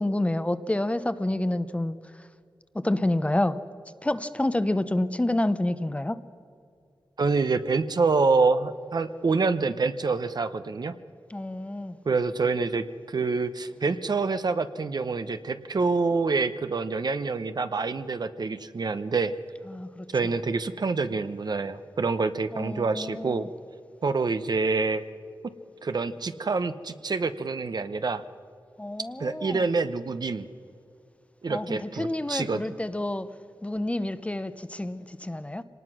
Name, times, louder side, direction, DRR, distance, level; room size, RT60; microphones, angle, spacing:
voice 1, 0.0-2.0 2.7-3.6 4.0-6.2 11.3-12.0 19.7-20.4 22.5-23.5 28.8-29.7 31.5-33.3 33.6-35.6, left 1 dB, 15° left, 0.7 m, -28 dB
voice 2, 7.2-11.0 12.1-19.3 20.1-23.5 24.0-25.0 25.4-25.5 25.8-28.2 29.2-30.5 31.4-32.6, right 4 dB, 55° right, 0.8 m, -26 dB
25.0 x 19.0 x 6.2 m
wide cardioid pair, 95°, 8 cm